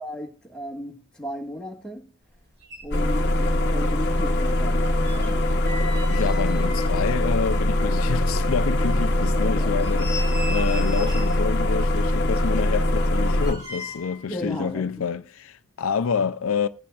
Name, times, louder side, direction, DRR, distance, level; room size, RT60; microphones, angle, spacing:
voice 1, 0.0-2.1 2.8-5.7 9.2-9.7 14.3-14.9, left 1 dB, 5° left, 1.6 m, -35 dB
sound 1, 2.3-2.4 2.6-3.6 3.9-7.8 8.2-8.3 8.8-8.9 9.5-11.4 12.3-14.3 14.6-14.7, left 1 dB, 50° right, 5.3 m, -39 dB
sound 2, 2.9-13.5, left 1 dB, 50° left, 1.0 m, -22 dB
Truck / Door, 5.0-8.2 9.2-11.8 12.4-12.5 12.7-12.9, equal, 25° right, 5.7 m, -44 dB
voice 2, 6.1-16.7, left 6 dB, 70° left, 0.5 m, -28 dB
21.0 x 8.6 x 2.4 m
head